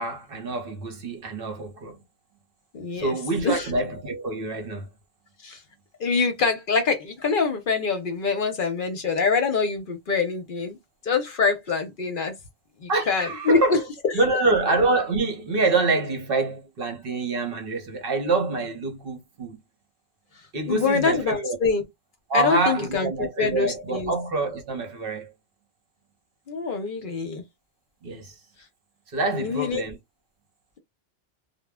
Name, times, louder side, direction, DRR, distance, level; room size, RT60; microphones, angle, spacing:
voice 1, 0.0-2.0 2.9-4.9 12.9-13.8 14.1-19.6 20.5-21.6 22.3-25.3 28.0-28.4 29.1-30.0, right 3 dB, 60° right, 0.9 m, -26 dB
voice 2, 2.7-3.2 3.4-3.7 5.4-5.6 6.0-10.8 11.0-12.4 12.8-13.8 20.7-21.8 22.3-24.1 26.5-27.4 29.3-29.8, left 4 dB, 60° left, 0.7 m, -25 dB
2.1 x 2.0 x 3.4 m
omnidirectional pair, 1.1 m